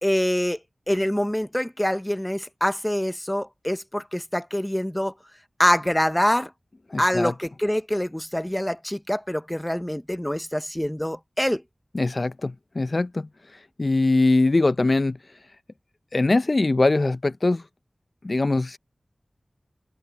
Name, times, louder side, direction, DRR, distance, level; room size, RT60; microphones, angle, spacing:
voice 1, 0.0-0.6 0.9-5.1 5.6-6.5 7.0-11.6, equal, 10° left, 0.6 m, -25 dB
voice 2, 6.9-7.3 11.9-13.3 13.8-15.2 16.1-17.6 18.2-18.8, left 2 dB, 55° left, 0.4 m, -22 dB
cardioid pair, 40°, 0 cm